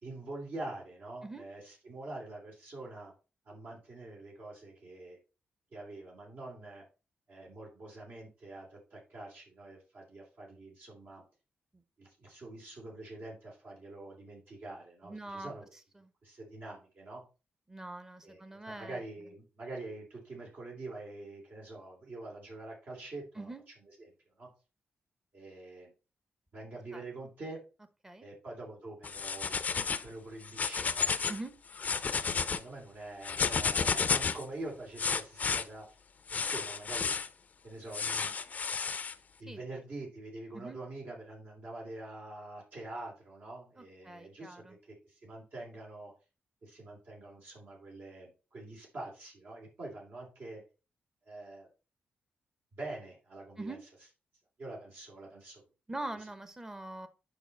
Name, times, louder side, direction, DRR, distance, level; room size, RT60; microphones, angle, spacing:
voice 1, 0.0-3.1 3.4-5.2 5.7-6.8 7.3-11.2 12.0-15.7 16.2-17.2 18.2-23.5 24.0-24.1 24.4-24.5 25.3-25.9 26.5-27.6 28.2-29.7 30.0-31.3 32.2-35.9 36.3-37.1 37.6-38.3 39.4-44.8 45.0-46.1 46.6-50.6 51.2-51.7 52.8-53.8 54.6-55.6, right 2 dB, 60° right, -2 dB, 3.3 m, -45 dB
voice 2, 15.0-15.5 16.0-16.1 17.7-19.0 23.4-23.6 26.9-27.0 28.0-28.3 31.3-31.5 39.5-39.6 40.5-40.8 43.8-44.8 53.6-53.8 55.9-57.1, right 2 dB, 15° right, 10 dB, 1.0 m, -43 dB
sound 1, 29.0-30.1 30.4-31.4 31.7-32.6 33.2-34.4 35.0-35.6 36.3-37.3 37.9-39.1, left 5 dB, 45° left, 0.6 m, -31 dB
7.1 x 5.5 x 4.1 m, 0.31 s
wide cardioid pair, 115°, 4 cm